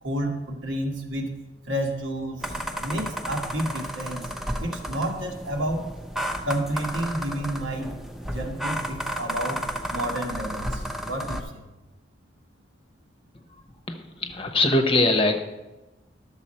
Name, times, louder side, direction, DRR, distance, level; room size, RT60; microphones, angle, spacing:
voice 1, 0.0-1.3 1.7-4.3 4.6-5.9 6.4-7.9 8.2-9.6 9.9-11.6, right 1 dB, 90° right, 1 dB, 1.6 m, -30 dB
sound 1, 2.4-11.4, equal, ahead, 0.6 m, -32 dB
voice 2, 14.0-15.4, left 2 dB, 30° left, 5 dB, 0.8 m, -22 dB
11.5 x 7.1 x 4.3 m, 1.1 s
head